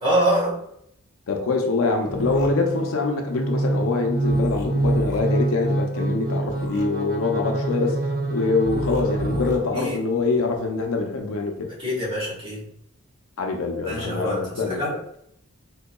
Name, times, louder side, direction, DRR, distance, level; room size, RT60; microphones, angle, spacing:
voice 1, 0.0-0.6 9.7-10.0 11.8-12.6 13.8-14.9, right 1 dB, 25° right, -6 dB, 1.3 m, -24 dB
voice 2, 1.3-8.0 8.3-11.7 13.4-15.0, left 3 dB, 65° left, 3 dB, 0.5 m, -24 dB
sound 1, 2.1-2.5 4.3-5.2 6.4-6.8 8.6-9.6, left 2 dB, 15° left, 0.6 m, -35 dB
sound 2, 2.1-10.0, right 2 dB, 40° right, 0.8 m, -26 dB
3.8 x 2.7 x 2.2 m, 0.73 s
head